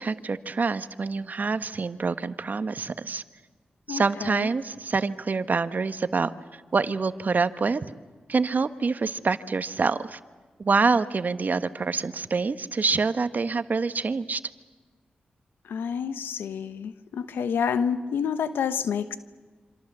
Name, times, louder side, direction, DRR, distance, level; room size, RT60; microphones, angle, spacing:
voice 1, 0.0-3.2 3.9-7.9 8.3-10.2 10.6-14.4, right 4 dB, 55° right, 12 dB, 1.1 m, -26 dB
voice 2, 3.9-4.5 15.7-19.2, left 7 dB, 90° left, 11 dB, 1.1 m, -28 dB
27.0 x 26.0 x 7.4 m, 1.4 s
cardioid pair, 45°, 4 cm